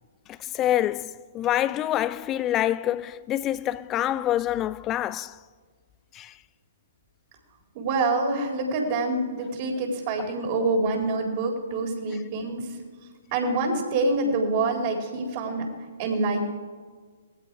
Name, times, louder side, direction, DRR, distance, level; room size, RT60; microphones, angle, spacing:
voice 1, 0.3-5.4 6.1-6.4, left 12 dB, 25° left, 0.4 m, -26 dB
voice 2, 7.7-12.8 13.3-15.6 16.0-16.5, right 3 dB, 40° right, 4.3 m, -26 dB
19.0 x 15.5 x 4.8 m
hypercardioid pair, 130°, 0 cm